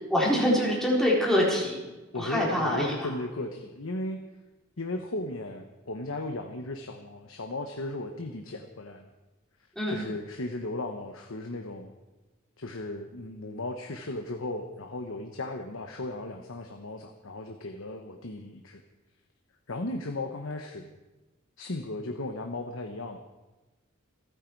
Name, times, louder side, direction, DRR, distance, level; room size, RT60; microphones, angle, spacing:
voice 1, 0.1-1.8 2.1-3.1 9.8-10.0, equal, ahead, -4 dB, 4.1 m, -25 dB
voice 2, 2.1-4.2 4.8-9.1 9.9-11.9 12.6-18.8 19.7-20.9 21.6-23.2, left 2 dB, 75° left, 5 dB, 1.1 m, -36 dB
28.0 x 9.3 x 4.7 m, 1.1 s
head